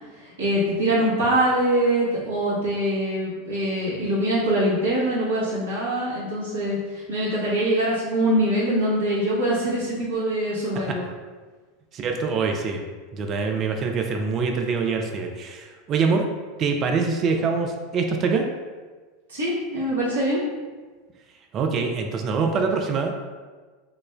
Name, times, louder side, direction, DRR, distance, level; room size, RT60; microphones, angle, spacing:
voice 1, 0.2-11.0 19.3-20.4, right 1 dB, 75° right, -9 dB, 1.1 m, -23 dB
voice 2, 11.9-12.8 13.1-16.3 16.6-18.5 21.5-23.1, right 4 dB, 35° right, 3 dB, 0.3 m, -24 dB
4.9 x 2.1 x 2.3 m, 1.4 s
figure-of-eight pair, 80°, 0 cm